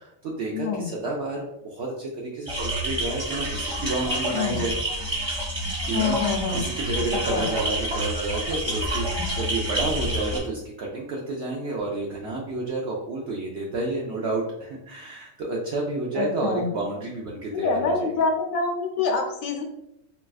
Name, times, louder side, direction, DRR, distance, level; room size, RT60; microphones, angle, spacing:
voice 1, 0.0-4.8 5.8-18.1, right 2 dB, 65° right, -2 dB, 0.7 m, -30 dB
voice 2, 0.5-0.9 4.3-4.6 5.9-6.7 7.3-7.5 16.1-16.7 17.5-19.6, left 4 dB, 85° left, 3 dB, 1.1 m, -26 dB
sound 1, 2.5-10.4, right 1 dB, 40° right, 1.2 m, -28 dB
3.9 x 2.4 x 2.3 m, 0.80 s
omnidirectional pair, 1.4 m